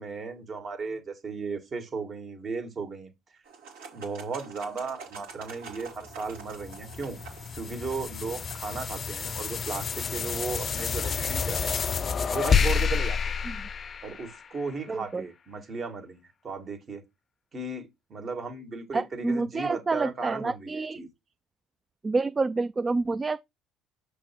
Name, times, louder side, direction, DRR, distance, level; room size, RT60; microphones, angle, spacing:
voice 1, 0.0-3.1 3.9-7.2 7.6-11.9 12.3-13.4 14.0-17.0 17.5-21.1, right 4 dB, 40° right, 1.9 m, -36 dB
sound 1, 3.4-12.5, right 5 dB, 80° right, 2.3 m, -49 dB
sound 2, 6.1-14.7, left 6 dB, 40° left, 0.5 m, -29 dB
voice 2, 14.9-15.2 18.9-21.0 22.0-23.4, right 3 dB, 25° right, 0.3 m, -28 dB
6.1 x 3.4 x 5.9 m
hypercardioid pair, 70°, 0 cm